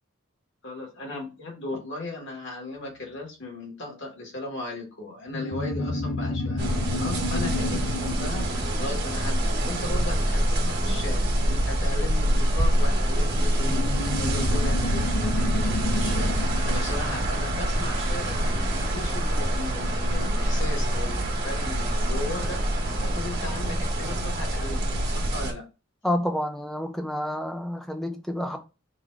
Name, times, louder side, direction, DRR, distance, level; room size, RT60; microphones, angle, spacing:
voice 1, 0.6-13.9 14.2-25.6, left 2 dB, 60° left, 1.9 m, -37 dB
sound 1, 5.3-10.3 13.6-18.6, left 2 dB, 85° left, 0.7 m, -31 dB
sound 2, 6.6-25.5, right 1 dB, 50° right, 1.6 m, -25 dB
voice 2, 26.0-28.6, left 1 dB, ahead, 0.7 m, -29 dB
3.9 x 2.8 x 4.7 m
head